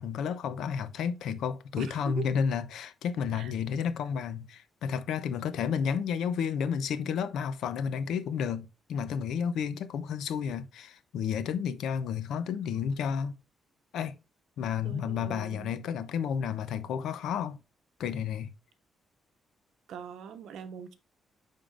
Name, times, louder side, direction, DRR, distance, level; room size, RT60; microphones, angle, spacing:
voice 1, 0.0-13.4 13.9-14.2 14.6-17.6 18.0-18.5, left 7 dB, 85° left, 0.6 m, -31 dB
voice 2, 1.8-2.3 3.3-3.5 14.8-15.7 19.9-20.9, right 8 dB, 85° right, 0.9 m, -42 dB
10.5 x 3.7 x 2.4 m
cardioid pair, 115°, 0 cm